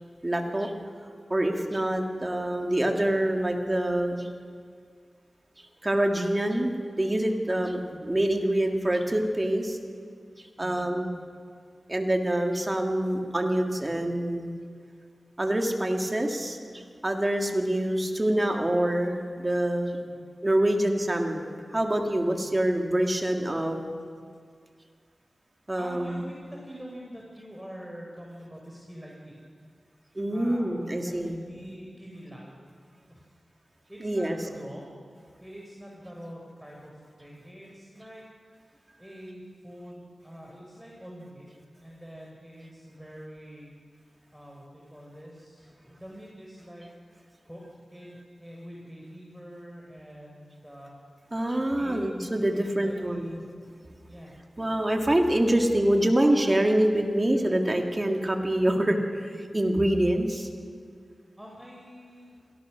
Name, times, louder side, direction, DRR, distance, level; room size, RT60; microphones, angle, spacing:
voice 1, 0.2-0.7 1.3-4.3 5.8-6.7 7.0-9.8 10.6-11.1 11.9-14.5 15.4-20.0 20.4-23.8 25.7-26.2 30.1-31.4 34.0-34.4 51.3-53.4 54.6-60.5, right 1 dB, 30° right, 2 dB, 3.2 m, -26 dB
voice 2, 25.8-29.5 30.3-32.6 33.1-33.4 33.9-34.9 35.4-38.3 39.0-41.5 41.8-43.7 44.3-46.9 47.4-47.6 47.9-50.9 51.8-53.4 54.1-54.4 61.4-62.4, equal, 5° right, -2 dB, 5.8 m, -45 dB
27.0 x 18.0 x 6.5 m, 2.1 s
cardioid pair, 40°, 0 cm